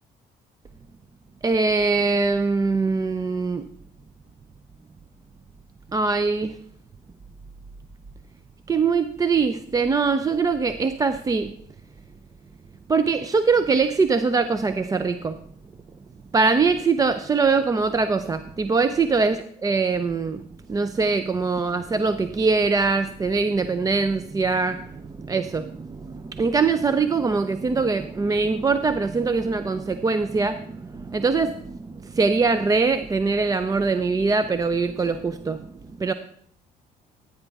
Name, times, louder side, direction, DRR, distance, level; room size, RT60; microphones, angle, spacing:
voice 1, 1.4-3.7 5.9-6.6 8.7-11.5 12.9-15.4 16.3-20.4 20.7-35.7 36.0-36.1, right 4 dB, 20° right, 11 dB, 0.4 m, -22 dB
13.5 x 9.2 x 3.5 m, 0.65 s
cardioid pair, 110°, 17 cm